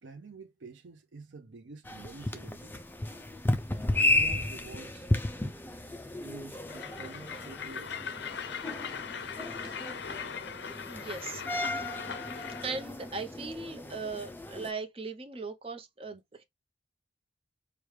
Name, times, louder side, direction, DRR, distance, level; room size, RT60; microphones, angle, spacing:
voice 1, 0.0-2.8 3.9-5.1 6.1-8.0 9.6-9.8, right 3 dB, 75° right, 0.6 m, -48 dB
sound 1, 1.9-14.7, left 2 dB, 10° left, 0.4 m, -34 dB
Train, 6.7-12.7, left 6 dB, 65° left, 0.5 m, -40 dB
voice 2, 10.9-11.8 12.6-16.4, right 4 dB, 30° right, 0.7 m, -39 dB
4.7 x 2.3 x 3.2 m
head